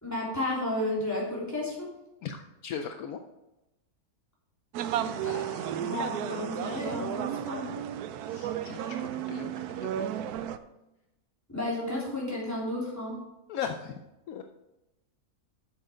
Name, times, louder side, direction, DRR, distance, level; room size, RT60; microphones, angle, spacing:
voice 1, 0.0-1.9 4.9-7.7 11.5-13.2, left 1 dB, 10° left, -6 dB, 3.3 m, -33 dB
voice 2, 2.2-3.2 8.3-10.0 13.5-14.0 14.3-14.4, left 7 dB, 75° left, 5 dB, 1.0 m, -38 dB
sound 1, 4.7-10.6, right 10 dB, 85° right, 1.1 m, -33 dB
8.1 x 7.2 x 5.0 m, 0.94 s
omnidirectional pair, 1.6 m